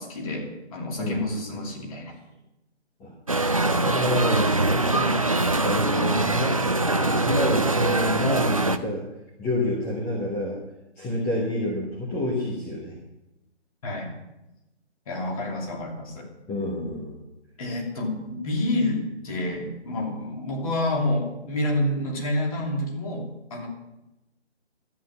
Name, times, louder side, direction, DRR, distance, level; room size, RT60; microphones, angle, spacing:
voice 1, 0.0-2.1 13.8-14.1 15.1-16.3 17.6-23.7, left 1 dB, 30° left, -2 dB, 2.7 m, -28 dB
voice 2, 1.0-1.3 3.0-3.1 3.7-5.3 5.6-9.0 9.4-10.6 11.0-13.0 16.5-17.2, left 1 dB, 10° left, -5 dB, 1.1 m, -28 dB
sound 1, 3.3-8.8, right 2 dB, 30° right, 0.4 m, -23 dB
13.0 x 9.2 x 5.8 m, 0.94 s
figure-of-eight pair, 145°, 35 cm